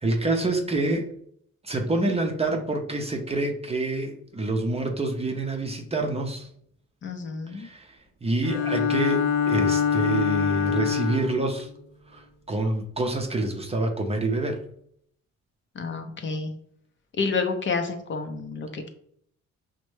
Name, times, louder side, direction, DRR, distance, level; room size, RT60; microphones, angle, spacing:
voice 1, 0.0-1.1 1.6-6.5 7.5-11.7 12.1-14.6, right 2 dB, 20° right, 3 dB, 0.6 m, -27 dB
voice 2, 7.0-7.7 15.7-16.5 17.2-18.9, left 4 dB, 40° left, 6 dB, 0.6 m, -29 dB
Bowed string instrument, 8.4-11.5, left 7 dB, 90° left, 0.5 m, -24 dB
5.0 x 2.2 x 3.1 m, 0.68 s
cardioid pair, 90°, 30 cm